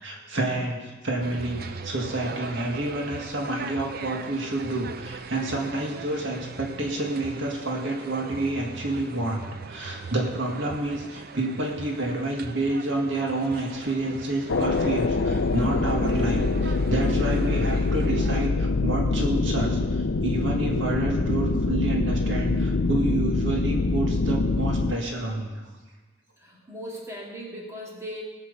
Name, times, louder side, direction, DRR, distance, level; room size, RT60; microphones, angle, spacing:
voice 1, 0.0-25.6, right 2 dB, 70° right, 0 dB, 1.9 m, -29 dB
sound 1, 1.2-18.5, right 4 dB, 50° right, 0.5 m, -40 dB
sound 2, 14.5-24.9, left 3 dB, 65° left, 0.6 m, -24 dB
voice 2, 26.4-28.2, equal, 15° right, -3 dB, 2.3 m, -38 dB
18.0 x 6.2 x 6.8 m, 1.3 s
head